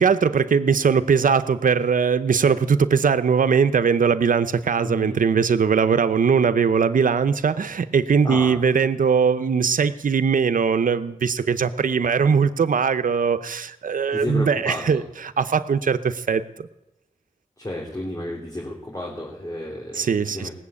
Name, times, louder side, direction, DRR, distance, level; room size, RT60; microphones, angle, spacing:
voice 1, 0.0-16.7 19.9-20.5, right 6 dB, 80° right, 11 dB, 0.7 m, -20 dB
voice 2, 4.8-5.2 8.2-8.6 14.1-15.0 17.6-20.5, left 1 dB, 25° left, -3 dB, 3.3 m, -32 dB
18.5 x 7.1 x 8.4 m, 0.91 s
cardioid pair, 50°, 14 cm